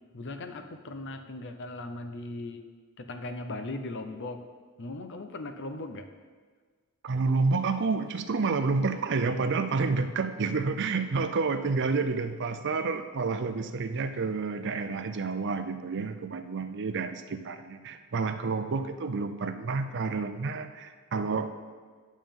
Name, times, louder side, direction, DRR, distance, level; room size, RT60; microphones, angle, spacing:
voice 1, 0.1-2.6 3.0-4.5 4.8-6.1, left 2 dB, 55° left, 7 dB, 0.7 m, -38 dB
voice 2, 7.0-21.5, right 4 dB, 55° right, 9 dB, 0.6 m, -29 dB
11.0 x 7.3 x 3.7 m, 1.5 s
head